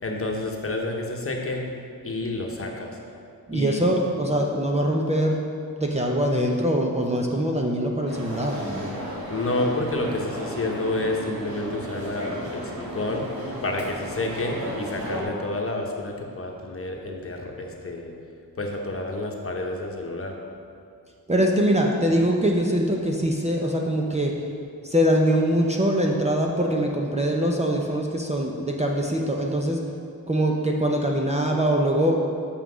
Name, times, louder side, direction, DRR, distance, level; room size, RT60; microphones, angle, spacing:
voice 1, 0.0-1.6 2.0-2.9 3.5-3.9 9.3-13.3 13.6-18.1 18.6-20.3, left 2 dB, 35° left, 1 dB, 1.1 m, -29 dB
voice 2, 3.5-5.4 5.8-8.9 21.3-24.3 24.8-29.8 30.3-32.2, equal, 20° right, 0 dB, 0.7 m, -23 dB
sound 1, 8.1-15.2, right 1 dB, 70° right, 1.8 m, -34 dB
6.8 x 5.8 x 6.1 m, 2.4 s
wide cardioid pair, 115°, 37 cm